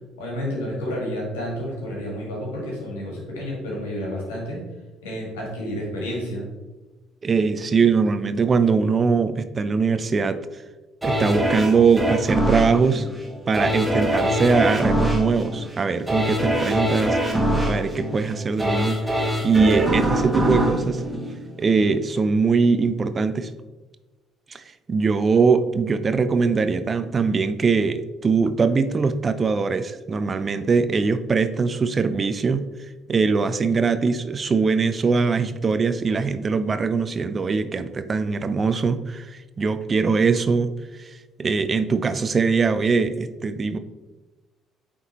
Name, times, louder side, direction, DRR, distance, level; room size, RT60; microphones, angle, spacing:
voice 1, 0.2-4.6 5.0-6.4, equal, 80° left, -3 dB, 1.8 m, -30 dB
voice 2, 7.2-10.4 11.0-13.1 13.5-19.0 19.4-21.0 21.6-23.5 24.5-24.6 24.9-32.6 33.1-40.7 41.0-41.1 41.4-43.8, right 4 dB, 35° right, 11 dB, 0.4 m, -21 dB
sound 1, 11.0-22.0 22.4-22.5, right 1 dB, 10° right, 1.5 m, -24 dB
8.9 x 3.6 x 2.9 m, 1.2 s
hypercardioid pair, 50°, 0 cm